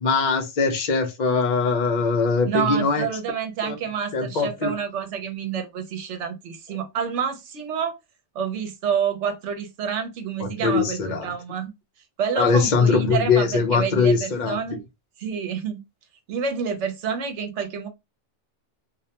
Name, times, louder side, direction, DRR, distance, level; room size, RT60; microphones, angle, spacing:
voice 1, 0.0-3.1 3.6-3.7 4.1-4.7 10.4-11.3 12.4-14.6, left 5 dB, 55° left, 0.5 m, -21 dB
voice 2, 2.5-8.0 8.3-11.7 12.2-14.8 15.2-15.8 16.3-17.9, right 7 dB, 75° right, 1.0 m, -28 dB
2.4 x 2.1 x 2.7 m
omnidirectional pair, 1.2 m